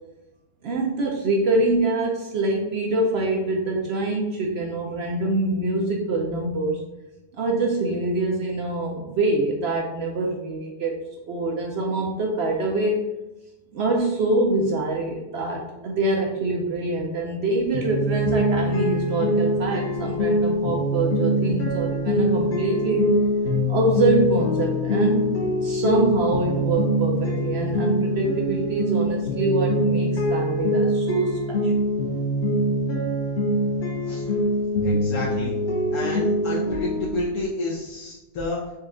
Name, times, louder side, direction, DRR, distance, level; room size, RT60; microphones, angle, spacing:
voice 1, 0.6-6.8 7.3-11.0 11.3-13.1 13.7-23.2 23.7-25.3 25.6-31.7, right 2 dB, 70° right, -1 dB, 0.6 m, -25 dB
sound 1, 17.7-37.1, equal, 55° left, 0.9 m, -24 dB
voice 2, 34.8-35.5 35.9-38.7, left 2 dB, 75° left, -6 dB, 1.2 m, -30 dB
4.2 x 2.3 x 3.7 m, 1.0 s
omnidirectional pair, 1.6 m